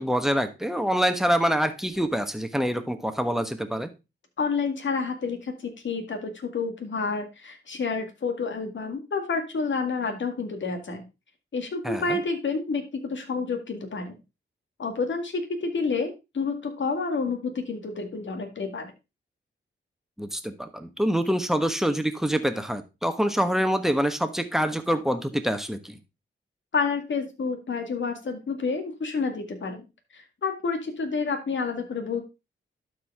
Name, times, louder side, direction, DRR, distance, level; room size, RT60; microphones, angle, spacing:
voice 1, 0.0-3.9 11.8-12.2 20.2-26.0, equal, ahead, 8 dB, 1.3 m, -26 dB
voice 2, 4.4-11.0 11.5-14.1 14.8-18.9 26.7-29.8 30.1-32.2, left 4 dB, 60° left, 5 dB, 2.0 m, -29 dB
12.0 x 4.8 x 3.5 m, 0.26 s
cardioid pair, 70°, 21 cm